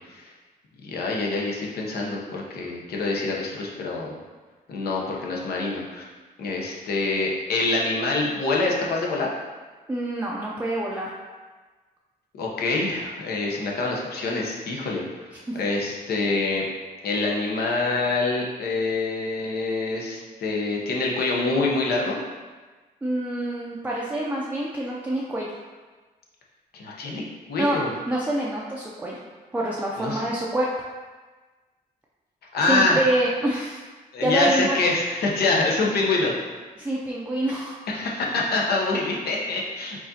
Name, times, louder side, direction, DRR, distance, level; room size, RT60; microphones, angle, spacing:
voice 1, 0.8-4.2 4.7-6.1 6.4-9.3 12.3-15.0 15.6-16.6 17.0-22.2 26.7-27.9 30.0-30.2 32.5-33.0 34.1-36.3 37.9-40.0, left 3 dB, 80° left, -2 dB, 0.9 m, -25 dB
voice 2, 9.9-11.1 15.5-15.6 23.0-25.5 27.6-29.2 29.5-30.7 32.7-33.8 34.2-34.8 36.8-37.8, right 1 dB, 10° right, -5 dB, 0.4 m, -26 dB
4.8 x 3.9 x 2.8 m, 1.3 s
cardioid pair, 125°, 16 cm